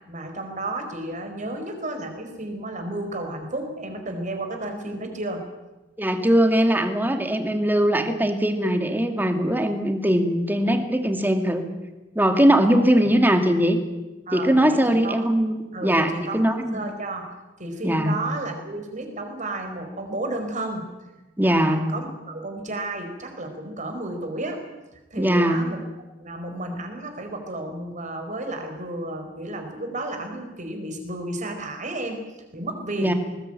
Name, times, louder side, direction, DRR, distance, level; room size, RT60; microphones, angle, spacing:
voice 1, 0.1-5.4 12.8-13.1 14.3-15.2 15.7-17.3 17.6-20.9 21.5-24.6 25.1-25.8 26.2-32.2 32.5-33.2, right 2 dB, 45° right, 5 dB, 4.8 m, -32 dB
voice 2, 6.0-11.7 12.2-13.8 14.3-16.7 17.8-18.2 21.4-21.9 25.2-25.6 33.0-33.1, equal, 10° right, 6 dB, 2.2 m, -20 dB
20.5 x 20.0 x 9.0 m, 1.1 s
head